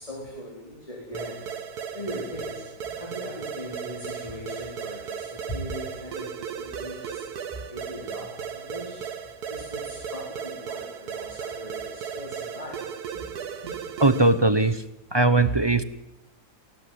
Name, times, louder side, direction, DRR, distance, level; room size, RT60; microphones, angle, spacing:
voice 1, 0.0-1.4 1.9-7.2 7.7-9.0 9.5-13.3 13.6-13.8, equal, 20° left, -2 dB, 4.8 m, -39 dB
sound 1, 1.1-14.5, right 7 dB, 75° right, 1.8 m, -36 dB
voice 2, 14.0-14.8 15.1-15.8, right 2 dB, 20° right, 13 dB, 0.7 m, -19 dB
21.0 x 17.5 x 9.6 m, 0.87 s
omnidirectional pair, 1.7 m